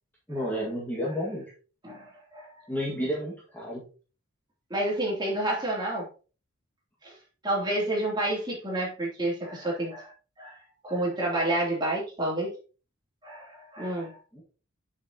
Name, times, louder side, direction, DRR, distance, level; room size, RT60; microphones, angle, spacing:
voice 1, 0.3-1.5 2.7-3.9 14.3-14.4, equal, 10° left, -6 dB, 1.7 m, -31 dB
voice 2, 1.8-2.5 4.7-6.1 7.0-7.1 7.4-10.1 10.4-10.5 10.8-12.5 13.2-14.2, right 1 dB, 20° right, -4 dB, 2.9 m, -29 dB
7.4 x 7.2 x 2.9 m, 0.36 s
head